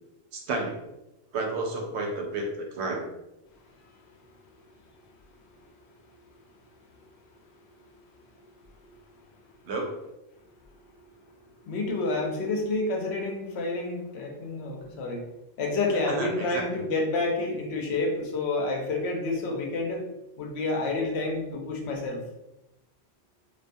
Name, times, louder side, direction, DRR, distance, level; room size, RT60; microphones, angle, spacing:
voice 1, 0.3-0.8 1.3-3.1 9.7-9.9 16.1-16.8, right 2 dB, 90° right, 2 dB, 0.9 m, -31 dB
voice 2, 11.7-15.2 15.6-20.0 20.4-22.2, left 2 dB, 80° left, 0 dB, 0.9 m, -29 dB
2.3 x 2.3 x 2.5 m, 0.93 s
omnidirectional pair, 1.1 m